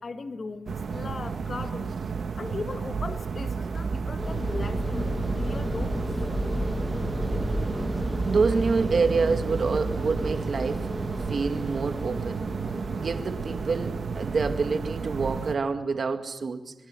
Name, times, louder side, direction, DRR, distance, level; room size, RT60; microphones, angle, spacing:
voice 1, 0.0-2.0 2.4-6.0, left 4 dB, 45° left, 1.5 m, -38 dB
sound 1, 0.7-15.6, right 5 dB, 70° right, 1.6 m, -33 dB
sound 2, 3.3-10.4, right 4 dB, 35° right, 1.0 m, -35 dB
sound 3, 4.2-15.4, equal, 10° left, 1.5 m, -34 dB
voice 2, 8.3-10.9 11.3-12.5 13.0-16.7, right 4 dB, 55° right, 2.0 m, -27 dB
26.5 x 23.0 x 7.6 m
wide cardioid pair, 160°, 0 cm